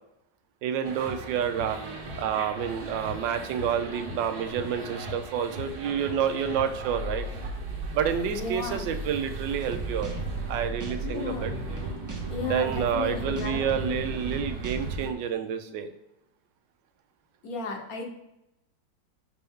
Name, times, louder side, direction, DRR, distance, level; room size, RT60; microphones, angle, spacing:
voice 1, 0.6-1.8 2.2-7.3 7.9-10.1 10.5-11.5 12.4-15.9, right 8 dB, 90° right, 8 dB, 1.3 m, -29 dB
sound 1, 0.8-15.1, right 2 dB, 65° right, 1.5 m, -37 dB
voice 2, 8.2-8.9 11.0-11.5 12.3-14.0 17.4-18.1, left 4 dB, 60° left, 1 dB, 1.3 m, -34 dB
sound 2, 9.6-14.9, right 4 dB, 25° right, 0.3 m, -38 dB
5.6 x 5.2 x 3.5 m, 0.87 s
omnidirectional pair, 1.9 m